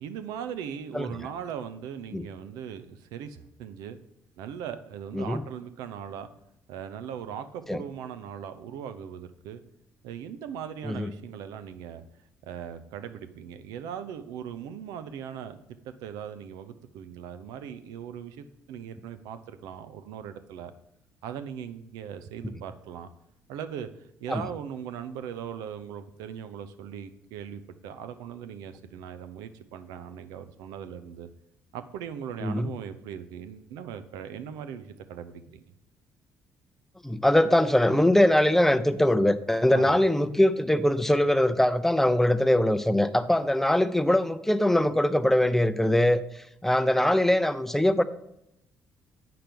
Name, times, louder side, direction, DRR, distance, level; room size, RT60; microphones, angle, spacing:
voice 1, 0.0-4.0 4.4-6.3 6.7-9.6 10.0-12.0 12.4-15.6 15.8-20.7 21.2-23.1 23.5-23.9 24.2-31.3 31.7-35.6 39.7-40.0, right 8 dB, 85° right, 10 dB, 0.6 m, -39 dB
voice 2, 37.0-48.0, left 1 dB, 5° left, 13 dB, 0.6 m, -22 dB
7.7 x 5.8 x 5.2 m, 0.80 s
supercardioid pair, 70°, 6 cm